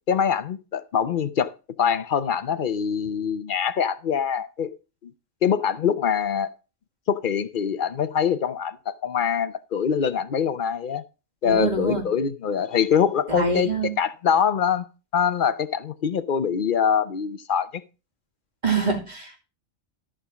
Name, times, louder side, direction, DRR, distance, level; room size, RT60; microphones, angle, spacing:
voice 1, 0.1-1.5 1.8-4.7 5.0-5.1 5.4-6.5 7.1-11.0 11.4-13.7 14.0-14.8 15.1-17.7, left 7 dB, 50° left, 0.8 m, -24 dB
voice 2, 11.4-12.1 13.3-13.9 18.6-19.4, right 3 dB, 35° right, 2.4 m, -25 dB
13.5 x 5.0 x 5.9 m
omnidirectional pair, 1.3 m